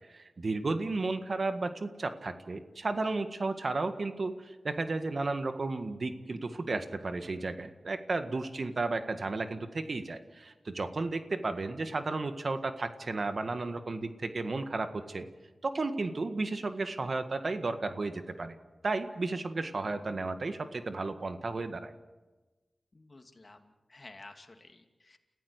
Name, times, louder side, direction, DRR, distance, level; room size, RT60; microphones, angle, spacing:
voice 1, 0.1-15.3 15.6-18.6 18.8-21.9, right 3 dB, 60° right, 9 dB, 1.7 m, -33 dB
voice 2, 22.9-25.2, left 2 dB, 45° left, 5 dB, 2.6 m, -53 dB
29.5 x 15.0 x 8.2 m, 1.2 s
cardioid pair, 45°, 0 cm